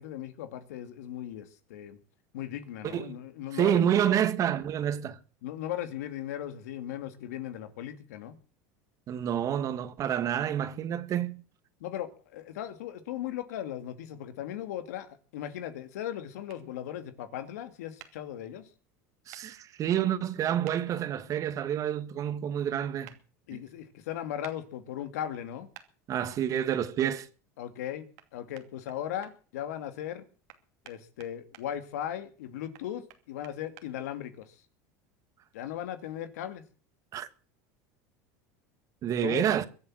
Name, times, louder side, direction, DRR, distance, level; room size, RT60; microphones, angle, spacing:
voice 1, 0.0-2.0 2.3-3.8 5.4-8.4 11.8-18.6 23.5-25.7 27.6-30.2 30.8-34.5 35.5-36.6 39.2-39.6, left 11 dB, 85° left, 2.4 m, -37 dB
voice 2, 2.8-3.2 3.5-5.2 9.1-11.4 19.3-23.1 23.5-23.6 26.1-27.3 37.1-37.3 39.0-39.7, right 10 dB, 40° right, 1.7 m, -28 dB
sound 1, 16.5-16.6 18.0-18.1 19.3-19.4 20.6-20.8 23.0-23.2 24.4-24.6 25.7-25.9 28.2-28.3 28.5-29.3 30.5-31.7 32.7-33.9, right 14 dB, 80° right, 2.7 m, -50 dB
23.0 x 7.8 x 7.6 m
supercardioid pair, 120°, 8 cm